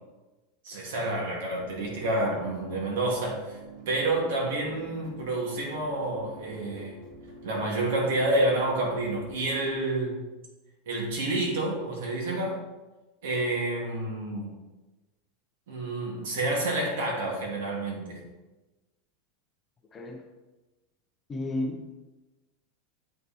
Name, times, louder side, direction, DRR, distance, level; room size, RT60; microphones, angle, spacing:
voice 1, 0.6-3.6 3.9-7.0 7.4-10.3 10.9-12.6 13.2-14.5 15.7-18.2, right 2 dB, 75° right, -2 dB, 3.1 m, -29 dB
sound 1, 1.5-9.9, right 3 dB, 45° right, 2.1 m, -47 dB
voice 2, 19.9-20.2 21.3-21.9, left 2 dB, 15° left, 3 dB, 0.7 m, -32 dB
8.3 x 5.7 x 4.6 m, 1.1 s
supercardioid pair, 175°, 0 cm